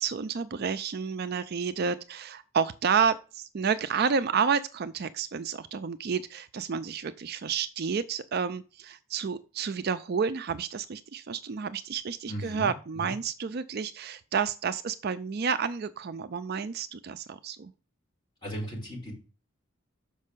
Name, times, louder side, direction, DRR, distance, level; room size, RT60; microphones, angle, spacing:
voice 1, 0.0-17.7, right 6 dB, 50° right, 12 dB, 0.4 m, -30 dB
voice 2, 12.3-13.2 18.4-19.1, equal, 20° left, -5 dB, 5.1 m, -37 dB
6.5 x 5.3 x 6.6 m, 0.34 s
head